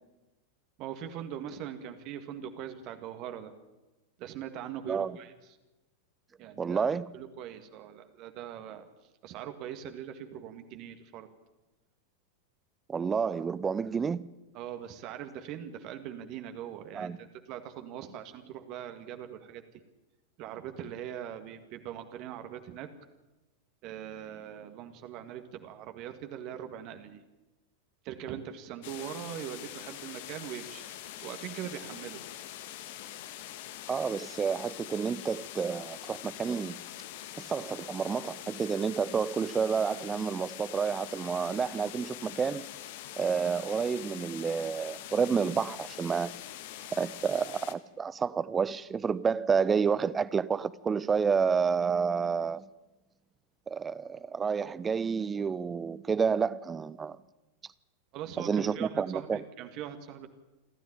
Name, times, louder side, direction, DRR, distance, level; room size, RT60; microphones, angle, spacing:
voice 1, 0.8-3.5 4.2-5.3 6.4-6.9 7.1-8.9 9.2-11.3 14.5-19.6 20.4-22.9 23.8-27.2 28.0-30.8 31.2-32.2 58.1-60.3, right 10 dB, 40° right, 1.8 m, -41 dB
voice 2, 6.6-7.1 12.9-14.3 16.9-17.2 33.9-36.8 37.5-42.6 43.2-46.3 46.9-52.7 53.7-57.2 58.4-59.4, right 6 dB, 20° right, 0.8 m, -29 dB
sound 1, 28.8-47.7, left 12 dB, 50° left, 1.6 m, -44 dB
28.0 x 13.5 x 8.8 m
figure-of-eight pair, 90°, 0 cm